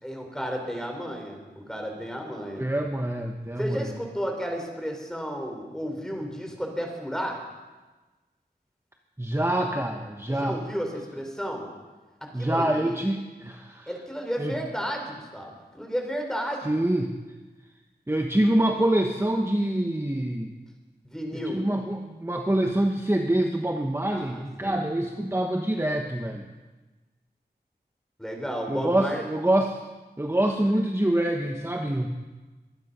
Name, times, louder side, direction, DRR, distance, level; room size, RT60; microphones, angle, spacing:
voice 1, 0.0-2.7 3.6-7.4 10.3-11.7 12.4-12.9 13.9-16.7 21.0-21.6 24.1-24.8 28.2-29.2, equal, 5° left, 2 dB, 4.2 m, -33 dB
voice 2, 2.6-3.9 9.2-10.6 12.3-13.9 14.4-14.6 16.6-17.1 18.1-20.5 21.5-26.5 28.7-29.8 30.2-32.1, right 1 dB, 15° right, 3 dB, 1.1 m, -25 dB
23.5 x 11.0 x 5.5 m, 1.2 s
wide cardioid pair, 50°, 18 cm